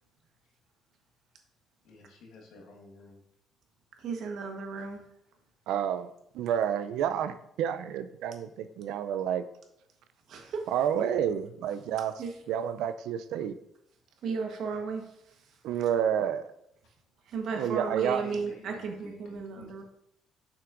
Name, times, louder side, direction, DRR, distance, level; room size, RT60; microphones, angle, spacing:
voice 1, 1.8-3.2 18.2-19.8, left 3 dB, 80° left, 0 dB, 1.4 m, -51 dB
voice 2, 4.0-5.0 10.3-10.6 12.2-12.3 14.2-15.0 17.3-19.8, right 5 dB, 65° right, 3 dB, 1.1 m, -34 dB
voice 3, 5.7-9.4 10.7-12.1 12.5-13.6 15.6-16.5 17.5-18.2, right 9 dB, 85° right, 11 dB, 0.4 m, -29 dB
6.9 x 5.8 x 2.5 m, 0.79 s
cardioid pair, 120°, 0 cm